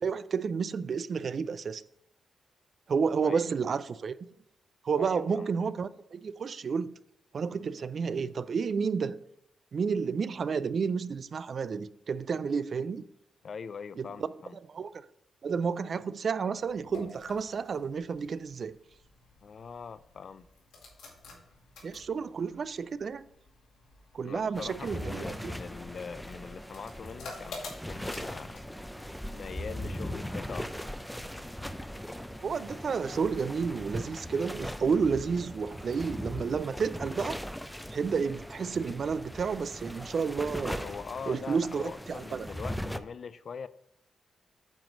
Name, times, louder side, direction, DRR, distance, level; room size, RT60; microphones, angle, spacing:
voice 1, 0.0-1.8 2.9-4.1 4.8-6.9 7.3-9.2 9.7-13.0 14.0-14.1 14.7-15.1 15.4-18.8 21.8-23.2 24.1-25.5 32.4-37.4 37.9-40.8 41.3-42.5, right 5 dB, 60° right, 0.3 m, -31 dB
voice 2, 5.0-5.5 13.4-14.6 19.4-20.5 24.2-28.6 29.3-30.7 40.8-43.7, left 6 dB, 60° left, 0.4 m, -42 dB
sound 1, 16.6-29.6, left 3 dB, 90° left, 2.2 m, -50 dB
sound 2, 24.5-43.0, equal, 5° left, 0.5 m, -39 dB
sound 3, 25.3-33.3, right 2 dB, 75° right, 0.8 m, -59 dB
8.9 x 3.0 x 6.4 m
cardioid pair, 60°, 0 cm